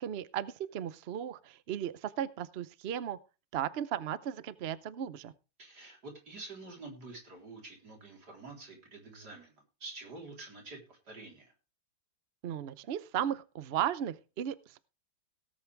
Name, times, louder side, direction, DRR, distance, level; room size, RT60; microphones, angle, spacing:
voice 1, 0.0-3.2 3.5-5.3 12.4-14.8, right 10 dB, 90° right, 15 dB, 0.5 m, -35 dB
voice 2, 5.6-9.6 9.8-11.5, right 3 dB, 50° right, 1 dB, 4.4 m, -48 dB
18.0 x 8.6 x 3.4 m, 0.31 s
omnidirectional pair, 2.2 m